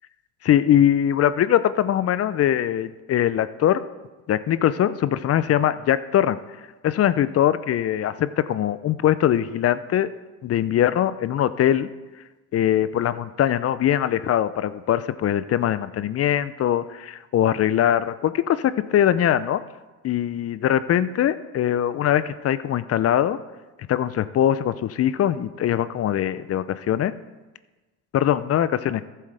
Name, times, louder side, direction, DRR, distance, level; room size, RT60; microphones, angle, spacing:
voice 1, 0.4-3.8 4.3-6.4 6.8-10.1 10.4-11.9 12.5-19.6 20.0-23.4 23.9-27.1 28.1-29.0, left 11 dB, 40° left, 15 dB, 0.5 m, -22 dB
14.0 x 7.7 x 3.4 m, 1.2 s
hypercardioid pair, 75°, 40 cm